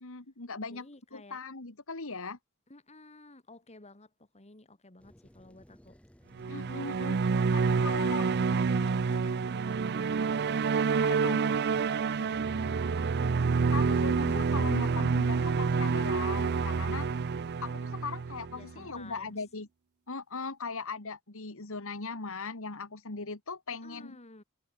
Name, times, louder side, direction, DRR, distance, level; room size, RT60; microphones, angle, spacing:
voice 1, 0.0-2.4 6.5-7.2 7.5-8.3 11.0-11.4 13.7-17.1 17.6-19.7 20.1-24.2, left 4 dB, 65° left, 2.1 m, -39 dB
voice 2, 0.7-1.4 2.7-6.0 7.3-10.1 11.1-12.8 18.5-19.4 23.7-24.4, left 2 dB, 30° left, 2.8 m, -53 dB
sound 1, 5.0-14.0, equal, 5° left, 2.4 m, -58 dB
sound 2, 6.4-18.9, right 5 dB, 50° right, 0.5 m, -28 dB
head